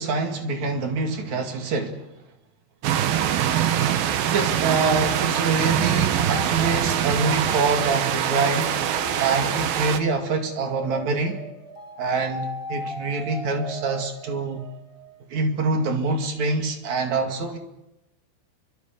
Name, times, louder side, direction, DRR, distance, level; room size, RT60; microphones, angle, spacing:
voice 1, 0.0-2.1 4.2-8.7 9.2-11.4 12.0-14.6 15.3-17.6, right 3 dB, 50° right, 2.7 m, -25 dB
sound 1, 2.8-10.0, right 10 dB, 70° right, 2.4 m, -23 dB
sound 2, 5.4-15.2, equal, 10° right, 1.9 m, -38 dB
29.5 x 25.0 x 5.2 m
omnidirectional pair, 5.6 m